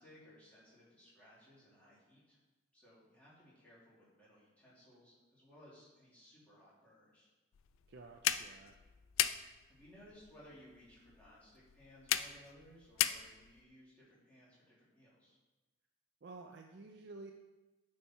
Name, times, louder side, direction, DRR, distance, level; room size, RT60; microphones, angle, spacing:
voice 1, 0.0-2.4 2.7-7.3 9.7-15.4, equal, 5° left, -9 dB, 2.6 m, -61 dB
sound 1, 7.5-13.6, left 11 dB, 90° left, 0.4 m, -38 dB
voice 2, 7.9-8.8 16.2-17.3, right 3 dB, 55° right, 3 dB, 0.4 m, -52 dB
9.0 x 4.5 x 4.3 m, 1.2 s
head